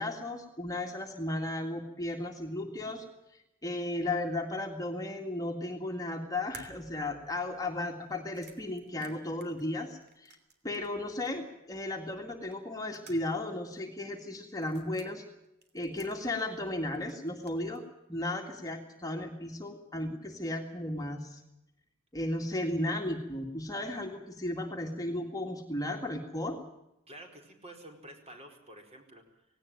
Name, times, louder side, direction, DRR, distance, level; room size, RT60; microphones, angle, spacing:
voice 1, 0.0-3.1 3.3-10.4 10.6-15.2 15.7-17.8 18.1-21.4 22.1-26.6, left 1 dB, 15° left, 2 dB, 2.0 m, -35 dB
sound 1, 6.5-11.0 11.3-11.4 12.5-13.5 13.8-13.9 14.6-15.1 15.6-16.7 16.9-17.8, right 4 dB, 50° right, 3.0 m, -55 dB
voice 2, 27.1-29.5, right 1 dB, 30° right, 3 dB, 4.5 m, -50 dB
18.5 x 18.0 x 9.0 m, 0.87 s
head